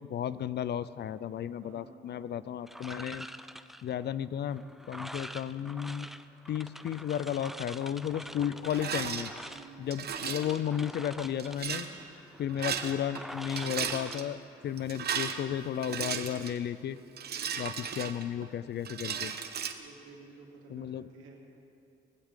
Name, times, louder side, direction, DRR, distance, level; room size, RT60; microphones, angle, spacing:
voice 1, 0.1-3.3 3.8-6.1 6.5-9.3 9.8-11.9 12.4-17.0 17.6-19.3 20.7-21.1, left 9 dB, 55° left, 16 dB, 0.6 m, -34 dB
voice 2, 1.6-2.0 8.3-8.6 9.5-10.2 11.8-12.1 17.3-17.7 19.8-21.5, right 4 dB, 90° right, -1 dB, 2.9 m, -53 dB
sound 1, 2.7-15.0, equal, ahead, 0.5 m, -46 dB
Rattle, 8.7-9.3 9.9-10.5 11.4-11.9 12.5-13.2 13.5-14.2 14.8-16.6 17.2-18.5 18.8-19.7, right 7 dB, 55° right, 1.1 m, -35 dB
21.0 x 15.5 x 3.8 m, 2.6 s
cardioid pair, 90°, 20 cm